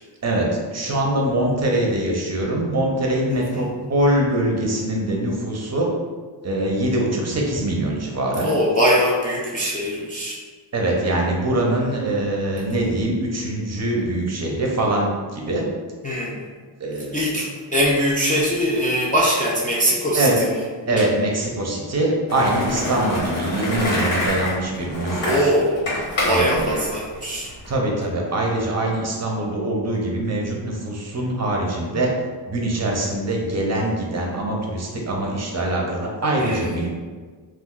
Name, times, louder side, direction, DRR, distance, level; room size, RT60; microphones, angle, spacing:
voice 1, 0.2-5.9 6.4-8.5 10.7-15.7 16.8-17.4 20.1-20.4 20.9-25.5 26.3-26.8 27.7-32.1 32.5-36.9, right 1 dB, 35° right, -1 dB, 0.5 m, -23 dB
voice 2, 3.3-3.7 8.4-10.4 16.0-16.4 17.1-20.6 21.0-21.1 25.2-25.9 26.2-27.5 36.4-36.9, equal, 20° left, -7 dB, 0.3 m, -22 dB
Skateboard, 22.3-27.7, left 1 dB, 80° left, 1.3 m, -26 dB
2.4 x 2.2 x 3.7 m, 1.5 s
wide cardioid pair, 125°, 47 cm